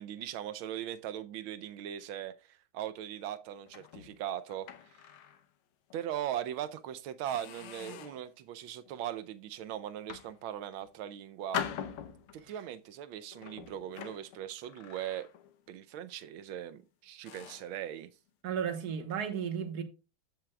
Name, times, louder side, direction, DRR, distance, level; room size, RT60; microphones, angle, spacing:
voice 1, 0.0-5.1 5.9-11.7 12.3-15.3 15.7-18.1, right 11 dB, 80° right, 1.4 m, -39 dB
sound 1, 3.7-5.5 5.9-6.1 6.6-6.8 7.3-8.3 8.9-9.2 9.9-10.9 11.5-12.5 13.3-15.7 15.9-16.2 16.8-16.9 17.3-17.8, left 9 dB, 85° left, 1.7 m, -43 dB
voice 2, 18.4-19.8, right 7 dB, 55° right, 1.5 m, -34 dB
14.5 x 5.9 x 2.3 m
omnidirectional pair, 2.3 m